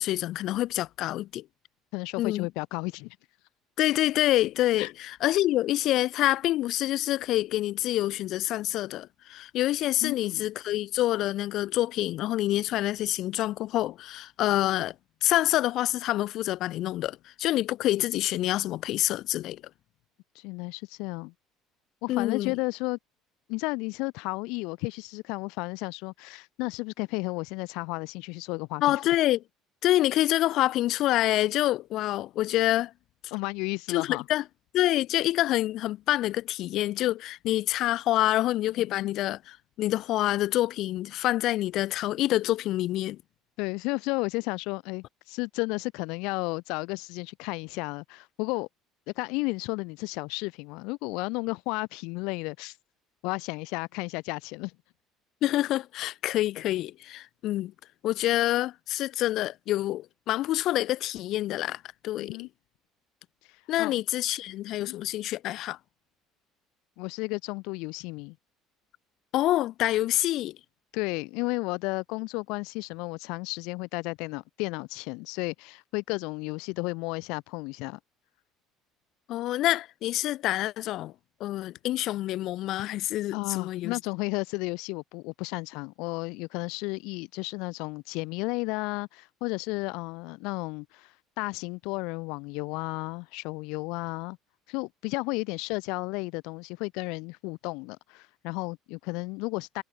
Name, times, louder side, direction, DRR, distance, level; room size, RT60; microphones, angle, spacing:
voice 1, 0.0-1.4 2.2-2.5 3.8-14.9 15.2-19.6 22.1-22.5 28.8-29.4 29.8-32.9 33.9-34.4 34.7-43.2 55.4-57.7 58.0-62.4 63.7-65.8 69.3-70.6 79.3-81.1 81.4-84.0, left 15 dB, 60° left, 1.7 m, -27 dB
voice 2, 1.9-3.2 4.8-4.9 10.0-10.5 20.3-21.3 22.0-23.0 23.5-29.0 33.3-34.2 38.8-39.1 43.6-48.7 49.1-52.8 53.2-54.7 62.2-62.5 63.4-64.0 64.8-64.9 67.0-68.3 70.9-78.0 83.3-94.4 94.7-99.8, left 27 dB, 80° left, 6.4 m, -33 dB
cardioid pair, 110°, 0 cm